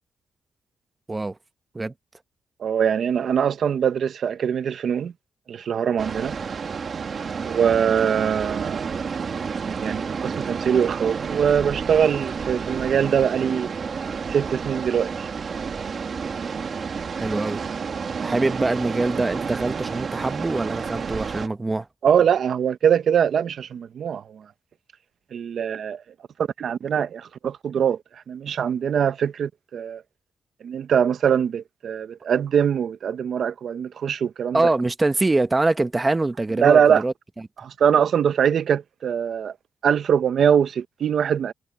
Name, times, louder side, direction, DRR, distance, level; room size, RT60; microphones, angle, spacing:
voice 1, 2.6-5.1 5.5-6.3 7.4-8.9 9.5-13.7 14.3-15.3 22.0-24.2 25.3-26.0 26.6-28.0 28.3-30.0 30.6-34.7 36.6-37.0 37.6-39.5 39.8-41.5, right 8 dB, 70° right, 0.8 m, -22 dB
sound 1, 6.0-21.5, right 5 dB, 50° right, 1.8 m, -30 dB
voice 2, 17.2-17.6 18.2-21.9 34.5-37.1, right 2 dB, 20° right, 1.2 m, -24 dB
cardioid pair, 110°, 0 cm